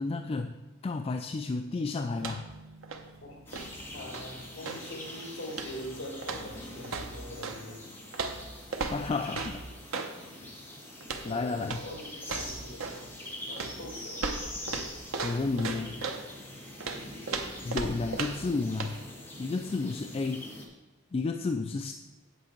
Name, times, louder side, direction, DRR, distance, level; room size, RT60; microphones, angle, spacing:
voice 1, 0.0-2.5 8.8-9.6 11.2-11.8 15.2-16.0 17.6-19.0 19.4-20.5 21.1-21.9, left 3 dB, 30° left, 5 dB, 0.3 m, -32 dB
sound 1, 2.1-2.6 2.8-4.9 5.5-5.9 6.2-7.6 8.1-10.2 11.0-11.3 11.6-11.9 12.2-13.1 13.6-16.3 16.8-18.5 18.8-19.0, right 4 dB, 80° right, 0.9 m, -37 dB
Bass guitar, 2.2-5.3, right 3 dB, 40° right, 0.6 m, -54 dB
voice 2, 3.2-7.9 11.2-14.3 18.0-18.2, equal, 60° left, 0 dB, 2.5 m, -43 dB
sound 2, 3.5-20.7, left 1 dB, 10° left, 1.7 m, -44 dB
8.5 x 8.1 x 4.5 m, 1.1 s
head